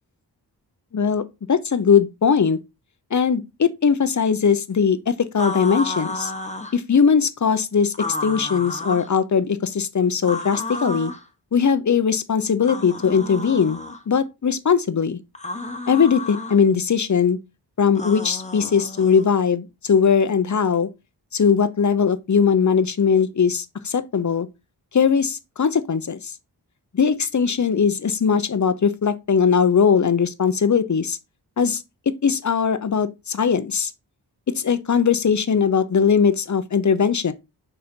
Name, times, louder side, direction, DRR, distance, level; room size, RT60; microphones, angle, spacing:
voice 1, 0.9-1.2 1.5-2.6 3.1-6.3 6.7-7.9 8.2-11.1 11.5-13.8 14.1-15.2 15.9-17.4 17.8-20.9 21.3-24.5 24.9-26.3 26.9-31.2 31.6-31.8 32.2-33.9 34.6-37.3, left 6 dB, 45° left, 0.8 m, -20 dB
sound 1, 5.4-6.8 7.9-9.1 10.2-11.2 12.6-14.0 15.3-16.6 17.9-19.3, left 2 dB, 15° left, 1.2 m, -31 dB
6.7 x 4.0 x 4.4 m
wide cardioid pair, 65°, 41 cm